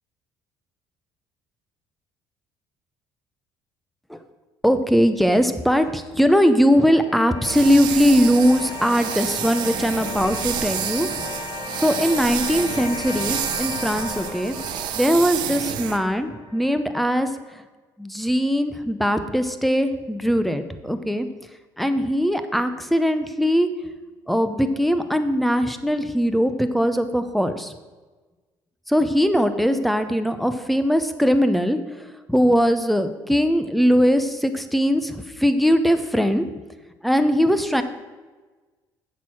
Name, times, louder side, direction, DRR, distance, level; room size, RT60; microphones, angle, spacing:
voice 1, 4.6-11.1 11.8-14.6 15.0-17.6 18.0-21.3 21.8-23.7 24.3-27.7 28.9-31.8 32.3-36.5 37.0-37.8, equal, ahead, 10 dB, 0.8 m, -20 dB
sound 1, 6.4-17.4, left 4 dB, 55° left, 1.6 m, -36 dB
sound 2, 7.4-16.0, right 10 dB, 75° right, 0.8 m, -29 dB
8.1 x 6.4 x 6.0 m, 1.3 s
cardioid pair, 100°, 8 cm